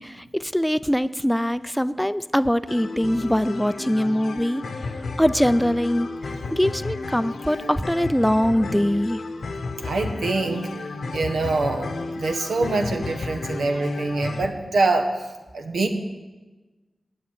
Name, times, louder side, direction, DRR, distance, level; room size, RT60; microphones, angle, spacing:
voice 1, 0.0-4.6 5.2-6.1 6.5-9.2, equal, 5° left, 15 dB, 0.5 m, -22 dB
sound 1, 2.7-14.5, left 3 dB, 80° left, 0.9 m, -33 dB
voice 2, 9.8-10.7 11.1-15.3 15.5-15.9, right 3 dB, 85° right, 4 dB, 1.1 m, -24 dB
9.0 x 7.7 x 8.7 m, 1.2 s
cardioid pair, 45°, 0 cm